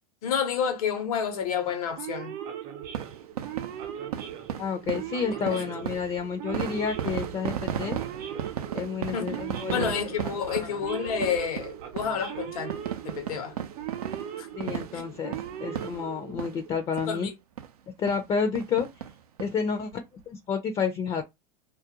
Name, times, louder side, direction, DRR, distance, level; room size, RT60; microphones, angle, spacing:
voice 1, 0.2-2.3 5.5-5.7 9.1-9.4 9.7-12.8 13.0-13.5 14.4-14.5 14.9-15.1 17.1-17.3, left 7 dB, 75° left, 0.8 m, -29 dB
Male speech man speaking / Siren, 2.0-16.7, right 10 dB, 50° right, 0.7 m, -39 dB
sound 1, 2.8-16.7 17.0-17.1 17.6-17.7 18.1-18.2 18.5-19.5 19.9-20.0 20.2-20.3, right 9 dB, 90° right, 0.5 m, -36 dB
voice 2, 4.6-8.0 8.7-9.9 10.2-10.7 14.6-17.3 18.0-19.0 19.4-21.3, left 6 dB, 30° left, 0.5 m, -30 dB
2.4 x 2.2 x 2.8 m
hypercardioid pair, 95°, 19 cm